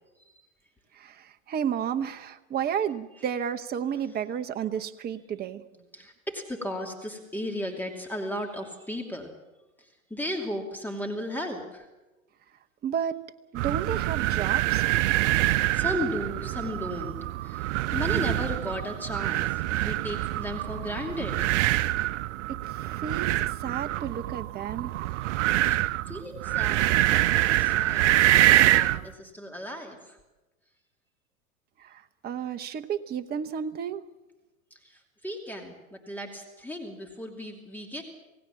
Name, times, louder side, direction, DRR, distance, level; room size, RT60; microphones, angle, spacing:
voice 1, 0.9-5.6 12.8-13.2 13.5-14.8 22.5-24.9 31.8-34.0, right 8 dB, 25° right, 7 dB, 0.9 m, -32 dB
voice 2, 5.9-9.3 9.8-11.9 15.3-21.4 25.7-25.8 26.1-30.2 34.7-38.0, left 1 dB, 5° left, 1 dB, 2.7 m, -36 dB
sound 1, 13.5-29.0, right 15 dB, 60° right, 0.8 m, -25 dB
27.5 x 17.0 x 7.5 m, 1.1 s
hypercardioid pair, 110°, 40 cm